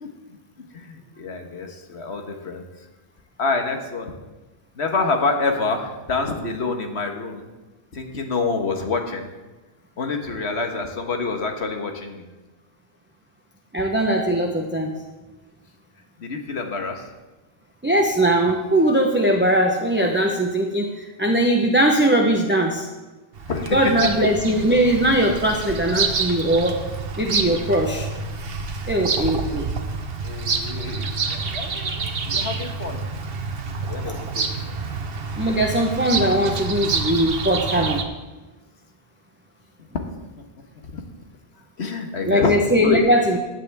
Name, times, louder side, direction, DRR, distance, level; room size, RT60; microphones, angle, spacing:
voice 1, 0.0-2.6 3.4-4.1 4.8-7.5 7.9-9.3 10.0-12.2 16.2-17.1 23.5-23.9 30.2-33.0 33.8-34.8 39.9-40.1 40.9-41.0 41.8-42.6 42.8-43.1, left 3 dB, 80° left, 4 dB, 1.6 m, -27 dB
voice 2, 13.7-14.9 17.8-22.9 23.7-26.8 27.2-28.1 28.9-29.7 35.4-38.0 42.3-43.4, right 1 dB, 10° right, 1 dB, 0.8 m, -20 dB
Bird vocalization bird call bird song, 23.3-38.0, right 4 dB, 65° right, 1.2 m, -28 dB
15.5 x 9.7 x 3.5 m, 1.1 s
omnidirectional pair, 1.1 m